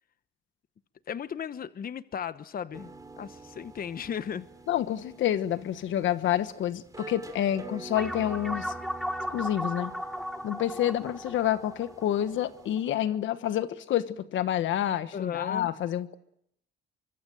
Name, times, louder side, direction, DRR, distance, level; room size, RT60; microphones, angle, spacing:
voice 1, 1.1-4.5 15.1-15.7, left 8 dB, 45° left, 1.0 m, -36 dB
sound 1, 2.7-12.8, right 3 dB, 20° right, 2.8 m, -47 dB
voice 2, 4.7-8.7 9.3-9.9 10.4-16.2, left 11 dB, 75° left, 1.3 m, -28 dB
sound 2, 8.0-12.8, equal, ahead, 1.4 m, -36 dB
24.5 x 24.5 x 7.8 m
cardioid pair, 90°, 20 cm